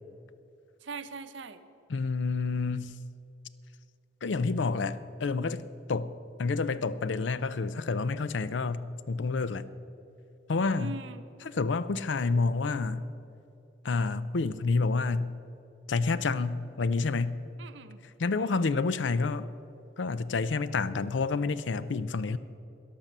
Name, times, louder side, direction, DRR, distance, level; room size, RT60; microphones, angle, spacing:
voice 1, 0.8-1.6 10.8-11.2 17.6-18.0 18.4-18.7, right 4 dB, 85° right, 11 dB, 0.8 m, -42 dB
voice 2, 1.9-2.9 4.2-5.6 5.9-6.1 6.4-9.6 10.5-10.9 11.4-13.1 13.8-15.3 15.9-17.4 18.2-19.5 20.0-22.4, left 4 dB, 75° left, 15 dB, 0.5 m, -29 dB
13.0 x 10.5 x 6.7 m, 2.7 s
head